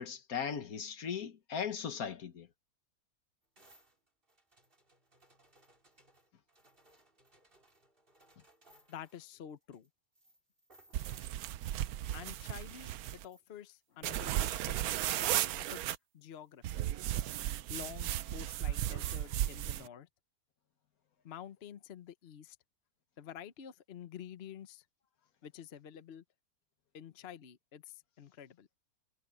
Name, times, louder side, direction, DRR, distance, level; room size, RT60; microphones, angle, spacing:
voice 1, 0.0-2.5, left 7 dB, 75° left, 1.7 m, -38 dB
sound 1, 3.6-9.3 9.7-9.9 10.2-11.5 13.0-13.4 14.2-15.5, right 1 dB, 35° right, 4.5 m, -63 dB
voice 2, 8.9-9.9 12.1-16.6 17.7-20.1 21.2-22.6 23.2-24.8 25.4-26.2 26.9-28.7, left 9 dB, 50° left, 1.0 m, -49 dB
sound 2, 10.9-13.2 14.0-16.0 16.6-19.9, right 13 dB, 80° right, 1.1 m, -35 dB
omnidirectional pair, 1.6 m